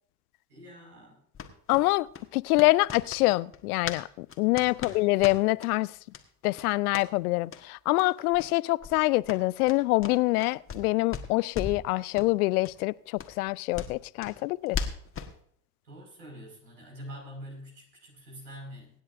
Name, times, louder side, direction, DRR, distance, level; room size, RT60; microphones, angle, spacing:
voice 1, 0.5-1.2 4.7-5.0 15.8-18.9, equal, 85° right, 5.3 m, -45 dB
sound 1, 1.3-4.0 4.3-5.7 6.1-6.2 6.5-7.1 7.5-7.6 7.9-8.1 8.3-8.5 8.8-10.8 11.1-11.9 12.1-12.3 12.6-12.7 13.2-15.3, left 6 dB, 25° left, 1.5 m, -38 dB
voice 2, 1.7-2.1 2.3-5.9 6.4-14.8, left 21 dB, 70° left, 0.5 m, -25 dB
24.5 x 9.4 x 2.6 m
hypercardioid pair, 70°, 48 cm